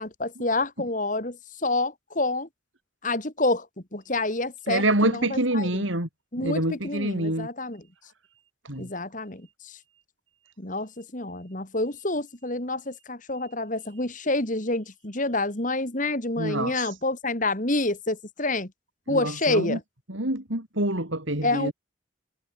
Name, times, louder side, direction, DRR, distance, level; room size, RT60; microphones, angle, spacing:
voice 1, 0.0-2.5 3.0-3.7 3.9-5.8 6.3-7.9 8.8-9.8 10.6-18.7 19.1-19.8 21.4-21.7, left 2 dB, 40° left, 2.7 m, -28 dB
voice 2, 4.7-6.1 6.4-7.5 8.6-8.9 16.4-16.9 19.1-19.8 20.1-21.7, right 1 dB, 70° right, 6.0 m, -26 dB
head